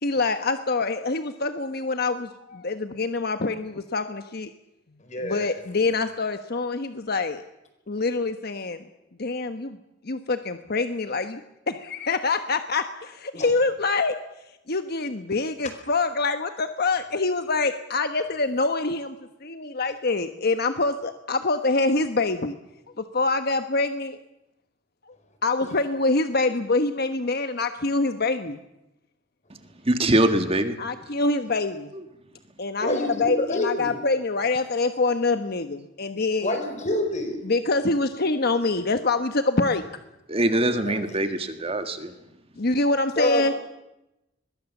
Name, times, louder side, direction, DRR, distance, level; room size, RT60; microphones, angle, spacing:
voice 1, 0.0-4.5 5.2-7.4 7.9-8.8 9.2-9.8 10.0-11.4 11.7-14.1 14.7-22.6 23.0-24.2 25.1-25.2 25.4-28.6 30.8-31.9 32.6-36.6 37.4-39.8 42.6-43.5, left 3 dB, 55° left, 8 dB, 1.2 m, -25 dB
voice 2, 5.0-5.5 13.3-13.5 32.8-34.0 36.4-37.4 40.9-41.0 43.2-43.5, left 1 dB, 40° left, 6 dB, 4.8 m, -27 dB
voice 3, 29.8-30.8 40.3-42.1, right 1 dB, 30° right, 8 dB, 1.8 m, -23 dB
24.5 x 21.5 x 7.3 m, 0.93 s
head